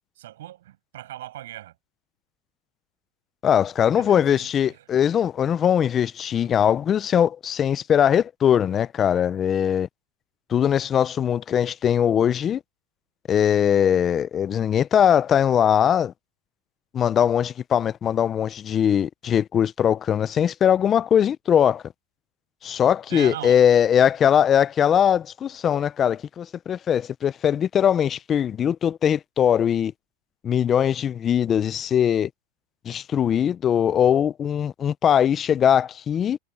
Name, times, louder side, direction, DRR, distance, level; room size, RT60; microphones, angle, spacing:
voice 1, 0.2-1.7 4.0-4.9 6.4-6.5 23.1-23.6, right 14 dB, 80° right, 7.8 m, -38 dB
voice 2, 3.4-9.9 10.5-12.6 13.3-16.1 16.9-21.8 22.6-29.9 30.4-32.3 32.9-36.4, left 9 dB, 20° left, 0.3 m, -21 dB
supercardioid pair, 165°, 0 cm